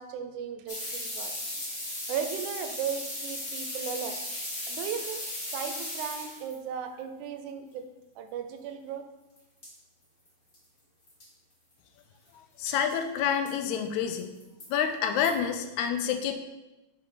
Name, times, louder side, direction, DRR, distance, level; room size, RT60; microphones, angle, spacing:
voice 1, 0.0-1.3 2.1-4.2 4.7-5.2 5.5-7.9 8.2-9.0, right 7 dB, 85° right, 7 dB, 2.1 m, -36 dB
sound 1, 0.7-6.6 9.4-9.5 9.6-9.7 10.3-10.4 10.5-10.6 11.1-11.2 12.7-12.9 13.5-13.6 14.2-14.7 15.2-15.3, left 1 dB, 60° left, 0.5 m, -36 dB
voice 2, 12.6-14.3 14.7-16.3, left 8 dB, 85° left, 7 dB, 2.0 m, -28 dB
5.4 x 4.7 x 4.8 m, 1.0 s
omnidirectional pair, 3.4 m